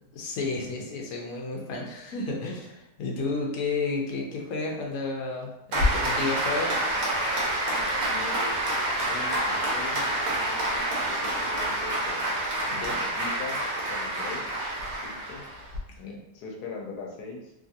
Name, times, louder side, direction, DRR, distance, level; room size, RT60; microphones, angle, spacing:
voice 1, 0.1-6.7 12.7-13.0 16.0-16.2, left 3 dB, 70° left, 0 dB, 1.0 m, -32 dB
Applause, 5.7-15.8, right 1 dB, 60° right, 1.1 m, -28 dB
voice 2, 7.6-8.7 9.0-12.4 13.0-13.6 13.9-14.5 14.9-15.4 16.0-16.1 16.3-17.5, left 4 dB, 90° left, 0 dB, 1.2 m, -41 dB
3.0 x 2.4 x 2.6 m, 0.86 s
omnidirectional pair, 1.6 m